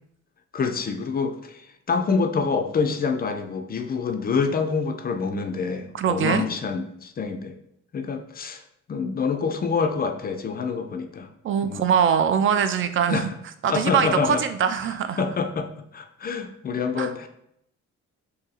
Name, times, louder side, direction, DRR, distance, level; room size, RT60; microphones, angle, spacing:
voice 1, 0.5-7.6 7.9-8.6 8.9-11.3 11.6-11.8 13.1-13.3 13.7-14.4 15.2-17.3, left 5 dB, 30° left, 7 dB, 0.4 m, -26 dB
voice 2, 5.9-6.5 11.4-13.3 13.6-15.2 17.0-17.1, right 7 dB, 45° right, 9 dB, 0.4 m, -22 dB
2.7 x 2.7 x 3.9 m, 0.75 s
cardioid pair, 90°, 30 cm